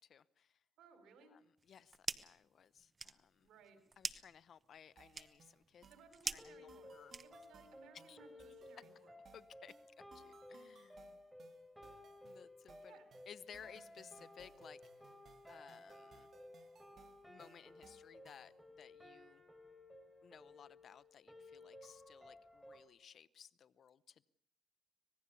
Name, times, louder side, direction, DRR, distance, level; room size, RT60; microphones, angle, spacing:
voice 1, 0.0-0.6 1.3-3.5 4.0-5.9 6.3-7.1 8.1-8.2 9.3-9.8 10.1-11.2 12.2-13.0 13.3-14.8 15.5-16.3 17.3-19.4 20.2-24.2, left 8 dB, 60° left, 18 dB, 0.8 m, -59 dB
voice 2, 0.8-1.3 3.4-3.8 5.9-6.9 7.2-9.1 12.8-13.1, right 5 dB, 85° right, 8 dB, 4.5 m, -63 dB
sound 1, 1.6-2.4 2.8-7.7, right 4 dB, 30° right, 1.0 m, -46 dB
sound 2, 5.0-18.6, right 6 dB, 50° right, 1.8 m, -65 dB
sound 3, 6.4-22.8, left 1 dB, 5° right, 3.8 m, -57 dB
25.5 x 19.5 x 7.0 m, 0.73 s
cardioid pair, 90°, 0 cm